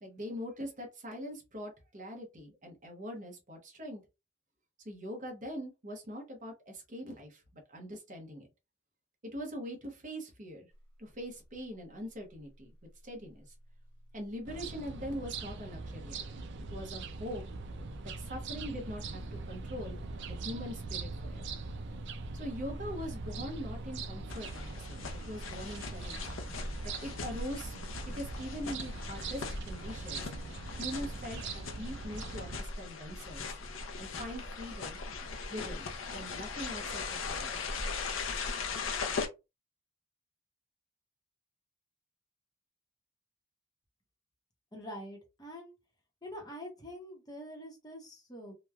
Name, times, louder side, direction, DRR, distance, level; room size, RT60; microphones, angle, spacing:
voice 1, 0.0-4.0 4.8-7.4 7.7-8.5 9.3-10.7 11.0-12.7 13.0-13.5 14.1-16.3 16.6-17.4 18.2-20.0 20.3-21.4 22.3-26.3 26.8-27.8 28.1-30.3 30.8-33.6 34.0-35.0 35.5-37.8, equal, 35° right, 2 dB, 0.9 m, -42 dB
sound 1, 13.4-24.2, equal, 80° left, 1.3 m, -48 dB
sound 2, 14.5-32.6, right 4 dB, 55° right, 0.4 m, -42 dB
sound 3, 24.3-39.3, left 4 dB, 60° left, 0.6 m, -39 dB
voice 2, 44.7-45.7 46.2-48.5, equal, 20° left, 1 dB, 0.8 m, -45 dB
3.0 x 2.2 x 2.3 m, 0.26 s
head